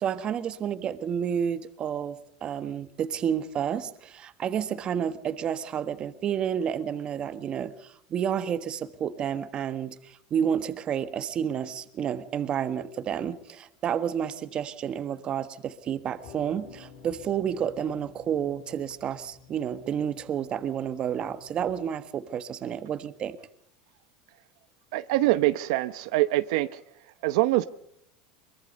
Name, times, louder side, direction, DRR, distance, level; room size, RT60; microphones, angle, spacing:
voice 1, 0.0-23.4, right 8 dB, 30° right, 1.4 m, -30 dB
sound 1, 16.0-22.0, left 6 dB, 60° left, 5.6 m, -52 dB
voice 2, 24.9-26.8 27.2-27.7, right 17 dB, 75° right, 0.8 m, -24 dB
24.0 x 23.0 x 5.4 m
supercardioid pair, 145°, 3 cm